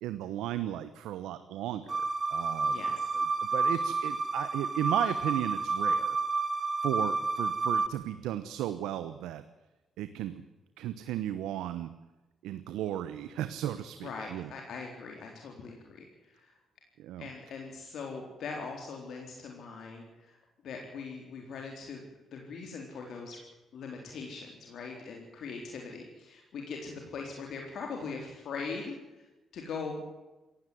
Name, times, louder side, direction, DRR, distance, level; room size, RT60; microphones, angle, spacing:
voice 1, 0.0-2.8 3.1-6.2 6.8-9.4 10.0-10.4 10.8-11.9 12.4-14.5 17.0-17.3, right 12 dB, 90° right, 12 dB, 1.0 m, -35 dB
sound 1, 1.9-7.9, right 4 dB, 35° right, 1.5 m, -30 dB
voice 2, 2.6-3.1 14.0-16.5 17.2-20.4 20.6-22.0 22.3-23.4 23.7-29.0 29.5-30.0, left 4 dB, 70° left, 1 dB, 3.9 m, -41 dB
18.0 x 16.0 x 9.4 m, 1.1 s
cardioid pair, 75°, 0 cm